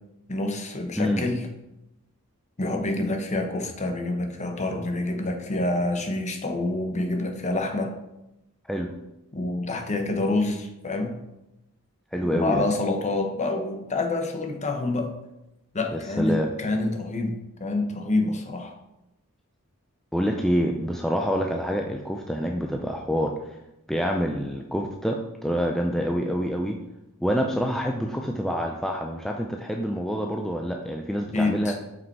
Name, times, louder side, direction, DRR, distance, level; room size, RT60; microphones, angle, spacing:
voice 1, 0.3-1.4 2.6-7.9 9.3-11.2 12.2-15.1 15.7-18.7 31.3-31.8, left 2 dB, 30° left, 5 dB, 0.9 m, -27 dB
voice 2, 12.1-12.6 15.9-16.5 20.1-23.6 23.9-26.8 27.2-31.8, equal, ahead, 1 dB, 0.4 m, -27 dB
5.8 x 5.2 x 4.6 m, 0.91 s
head